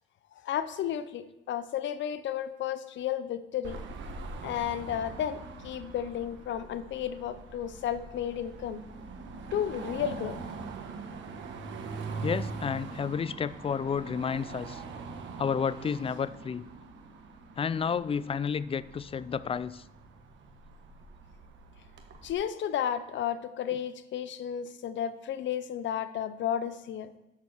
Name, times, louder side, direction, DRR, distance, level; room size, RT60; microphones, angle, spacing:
voice 1, 0.4-3.8 4.4-8.8 9.5-10.4 22.2-27.1, left 9 dB, 70° left, 13 dB, 0.6 m, -33 dB
Car passing by / Traffic noise roadway noise / Engine, 3.6-22.3, right 4 dB, 70° right, 1.1 m, -43 dB
voice 2, 12.2-14.8 15.4-16.7 17.6-19.8, left 6 dB, 30° left, 17 dB, 0.3 m, -31 dB
7.2 x 6.5 x 6.3 m, 0.96 s
cardioid pair, 90°, 20 cm